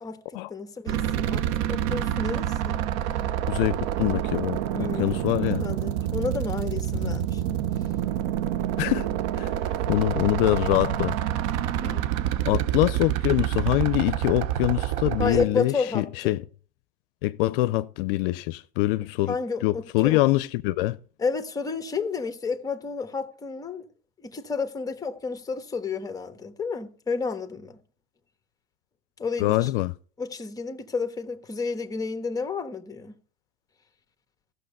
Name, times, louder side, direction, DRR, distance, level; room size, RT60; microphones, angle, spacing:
voice 1, 0.0-2.9 4.7-7.6 11.8-12.0 15.2-16.4 19.3-20.2 21.2-23.8 24.2-27.8 29.2-29.7 30.2-33.1, left 4 dB, 10° left, 1.2 m, -31 dB
sound 1, 0.9-15.5, right 11 dB, 55° right, 0.8 m, -27 dB
voice 2, 3.5-4.6 5.0-5.6 7.0-7.1 8.8-9.1 9.4-9.5 9.9-11.1 12.4-16.4 17.2-19.4 19.6-21.0 29.4-29.9, left 18 dB, 65° left, 0.6 m, -24 dB
14.0 x 6.5 x 6.7 m
supercardioid pair, 125°, 30 cm